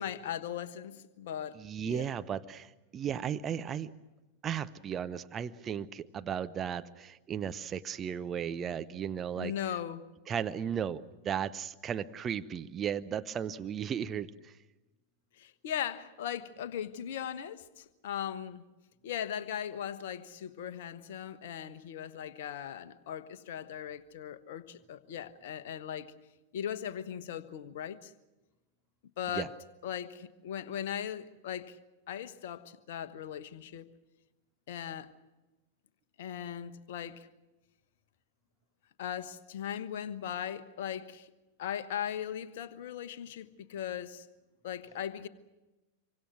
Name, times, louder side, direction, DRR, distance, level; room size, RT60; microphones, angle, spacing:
voice 1, 0.0-2.1 9.4-10.0 15.4-18.7 19.0-26.1 26.5-28.1 29.2-29.5 29.8-31.8 32.1-33.9 34.7-35.1 36.2-37.3 39.0-41.3 41.6-44.3 44.6-45.3, left 9 dB, 55° left, 1.2 m, -38 dB
voice 2, 1.5-3.9 4.4-9.5 10.3-14.5 29.3-29.5, right 8 dB, 25° right, 0.8 m, -35 dB
26.5 x 24.5 x 6.2 m
figure-of-eight pair, 90°, 0 cm